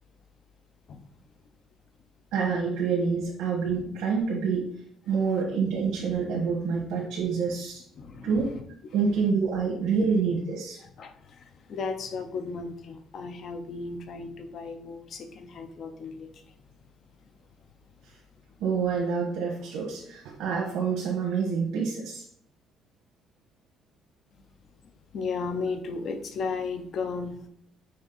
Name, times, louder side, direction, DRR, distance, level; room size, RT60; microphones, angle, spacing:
voice 1, 2.3-4.7 5.1-7.8 8.2-8.5 8.9-10.8 18.6-22.2, right 5 dB, 90° right, -2 dB, 1.5 m, -27 dB
voice 2, 8.0-8.3 11.0-16.3 25.1-27.4, left 4 dB, 45° left, 7 dB, 0.7 m, -35 dB
6.5 x 3.6 x 4.1 m, 0.66 s
cardioid pair, 155°, 0 cm